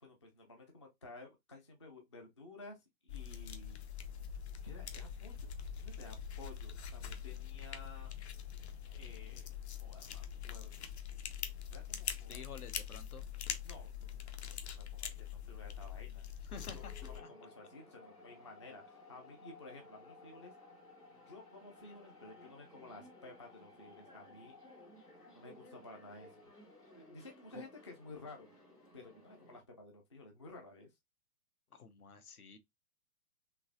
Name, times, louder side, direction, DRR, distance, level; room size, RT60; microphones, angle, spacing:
voice 1, 0.0-2.8 3.0-3.8 4.6-5.5 5.8-8.1 8.9-9.5 9.8-10.9 11.7-12.5 13.6-16.3 16.6-20.5 21.3-24.6 25.3-26.4 26.9-28.5 28.9-30.9, left 2 dB, 20° left, 0.4 m, -54 dB
sound 1, 3.1-17.2, left 8 dB, 45° left, 0.7 m, -44 dB
voice 2, 12.3-13.3 16.4-17.3 27.5-27.7 31.7-32.6, left 5 dB, 70° left, 1.1 m, -51 dB
sound 2, 16.5-29.6, left 2 dB, 85° left, 2.4 m, -58 dB
3.8 x 3.0 x 2.5 m
figure-of-eight pair, 120°, 46 cm